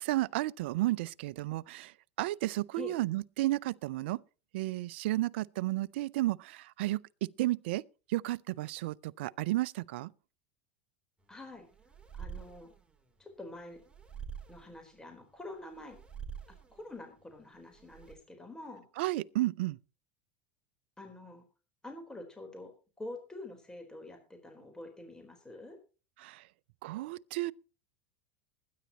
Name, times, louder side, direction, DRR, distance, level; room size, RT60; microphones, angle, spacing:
voice 1, 0.0-1.9 2.2-4.2 4.5-7.0 7.4-7.8 8.1-10.1 19.0-19.8 26.2-26.4 26.8-27.5, right 17 dB, 70° right, 0.6 m, -32 dB
sound 1, 11.2-18.2, right 7 dB, 15° right, 3.4 m, -48 dB
voice 2, 11.3-11.7 12.1-12.7 13.2-13.8 14.5-16.0 16.7-18.9 21.0-21.4 21.8-22.7 23.0-25.8, left 2 dB, 10° left, 4.1 m, -46 dB
21.5 x 10.5 x 3.0 m
hypercardioid pair, 95°, 6 cm